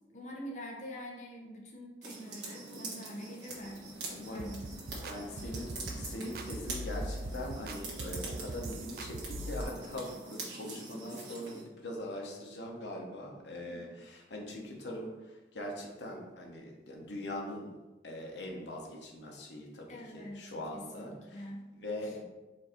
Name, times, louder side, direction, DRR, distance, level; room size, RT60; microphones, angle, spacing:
voice 1, 0.1-4.8 13.7-13.9 19.9-21.7 22.0-22.1, equal, 40° left, -1 dB, 0.8 m, -45 dB
sound 1, 2.0-11.6, right 3 dB, 80° right, 1.4 m, -44 dB
sound 2, 3.5-10.0, equal, 20° right, 0.8 m, -58 dB
voice 2, 4.1-4.6 5.0-17.7 18.0-21.5 21.7-22.2, left 1 dB, 80° left, 0 dB, 1.0 m, -42 dB
sound 3, 4.4-9.6, right 1 dB, 55° right, 0.3 m, -41 dB
4.6 x 2.7 x 4.3 m, 1.1 s
head